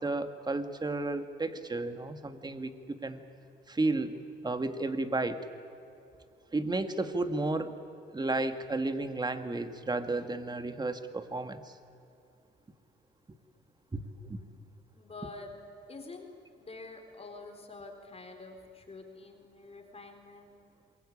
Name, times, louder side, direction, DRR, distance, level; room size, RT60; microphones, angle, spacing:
voice 1, 0.0-3.2 3.7-4.2 4.4-5.4 6.5-7.8 8.1-11.7 13.9-14.4, right 2 dB, 20° right, 8 dB, 1.9 m, -32 dB
voice 2, 14.9-15.5 15.9-16.3 16.6-20.5, left 3 dB, 30° left, 4 dB, 3.9 m, -47 dB
27.5 x 22.0 x 8.6 m, 2.6 s
cardioid pair, 90°, 20 cm